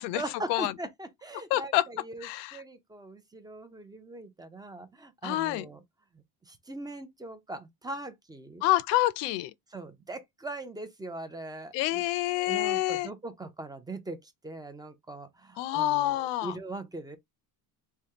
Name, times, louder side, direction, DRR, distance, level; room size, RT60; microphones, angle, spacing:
voice 1, 0.0-2.3 2.5-5.8 6.1-8.6 9.7-12.0 12.3-17.2, right 2 dB, 10° right, 0.5 m, -41 dB
voice 2, 1.5-1.9 2.2-2.6 5.2-5.7 8.6-9.5 11.7-13.1 15.6-16.5, left 16 dB, 75° left, 0.5 m, -27 dB
3.4 x 2.2 x 2.8 m
cardioid pair, 115°, 43 cm